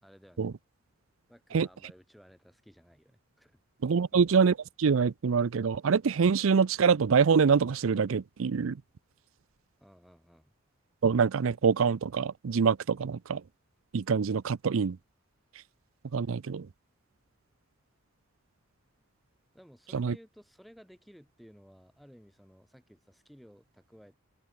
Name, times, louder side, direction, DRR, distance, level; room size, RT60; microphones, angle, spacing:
voice 1, 0.0-0.5 1.3-3.6 3.9-4.2 9.8-10.5 19.5-24.2, equal, ahead, 7.2 m, -56 dB
voice 2, 3.8-8.8 11.0-13.4 13.9-15.0 16.1-16.7 19.9-20.1, right 6 dB, 75° right, 0.5 m, -25 dB
head